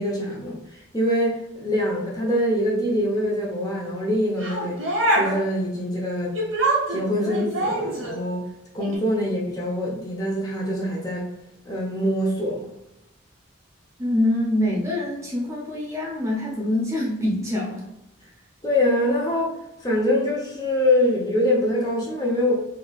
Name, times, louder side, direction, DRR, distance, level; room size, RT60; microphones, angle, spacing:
voice 1, 0.0-4.8 5.1-6.4 6.9-8.5 8.7-11.3 11.7-12.7 18.6-22.5, left 1 dB, 20° left, -3 dB, 0.7 m, -24 dB
sound 1, 4.4-5.4 6.3-8.2 8.8-9.0, right 1 dB, 85° right, 1.2 m, -24 dB
voice 2, 14.0-17.8, left 1 dB, 15° right, -3 dB, 0.6 m, -25 dB
3.8 x 2.9 x 2.4 m, 0.86 s
head